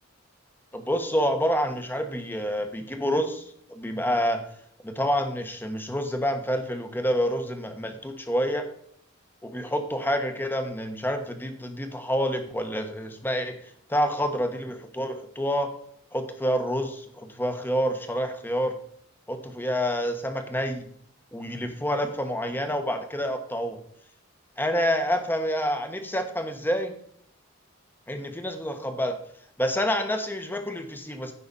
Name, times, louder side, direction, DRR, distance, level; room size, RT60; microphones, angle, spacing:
voice 1, 0.7-3.4 3.7-4.4 4.8-8.7 9.4-13.5 13.9-15.7 16.1-18.8 19.3-20.8 21.3-23.8 24.6-26.9 28.1-29.2 29.6-31.3, equal, 10° left, 6 dB, 1.2 m, -28 dB
15.5 x 5.9 x 4.1 m, 0.65 s
head